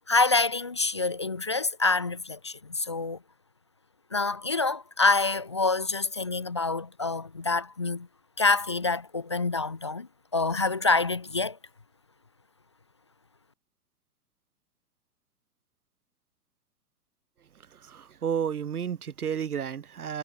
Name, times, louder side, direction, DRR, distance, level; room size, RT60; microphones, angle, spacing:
voice 1, 0.1-3.2 4.1-8.1 8.4-10.1 10.3-11.6, left 3 dB, 20° left, 0.3 m, -26 dB
voice 2, 17.9-20.2, right 8 dB, 65° right, 1.6 m, -31 dB
figure-of-eight pair, 115°, 48 cm